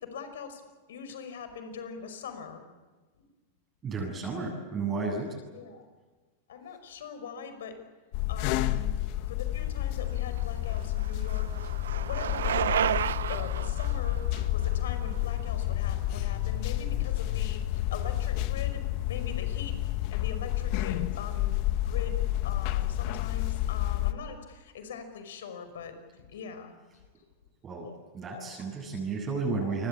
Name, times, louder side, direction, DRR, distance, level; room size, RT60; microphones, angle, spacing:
voice 1, 0.0-2.6 5.5-5.8 6.5-7.8 8.3-8.9 9.3-12.9 13.3-14.2 14.5-18.8 19.1-19.7 20.1-26.7 28.6-28.8 29.4-29.5, left 6 dB, 80° left, 9 dB, 5.4 m, -42 dB
voice 2, 3.8-5.3 27.6-27.9 28.1-29.9, right 4 dB, 25° right, -1 dB, 8.0 m, -32 dB
sound 1, 8.1-24.1, left 14 dB, 55° left, 1.5 m, -30 dB
Bicycle, 10.2-16.1, right 9 dB, 85° right, 0.8 m, -33 dB
28.5 x 22.0 x 8.6 m, 1.3 s
hypercardioid pair, 115°, 0 cm